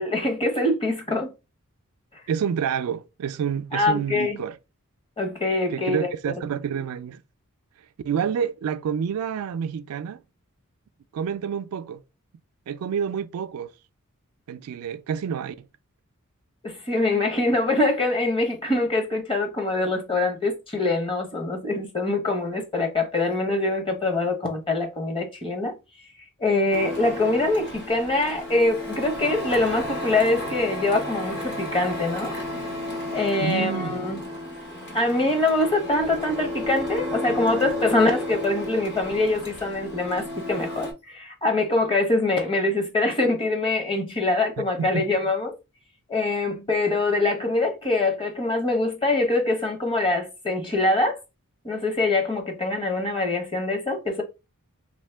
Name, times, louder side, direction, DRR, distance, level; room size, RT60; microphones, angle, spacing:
voice 1, 0.0-1.3 3.7-4.4 5.2-6.4 16.6-25.7 26.4-32.3 33.1-34.2 34.9-45.5 46.1-51.2 51.6-54.2, left 2 dB, 25° left, 0.8 m, -24 dB
voice 2, 2.3-4.6 5.7-7.2 8.0-10.2 11.1-12.0 12.7-13.7 14.5-15.7 33.4-34.0 44.6-45.1, right 7 dB, 75° right, 0.3 m, -28 dB
Printer, 26.7-40.9, left 1 dB, 50° left, 1.0 m, -33 dB
3.0 x 2.7 x 3.3 m
head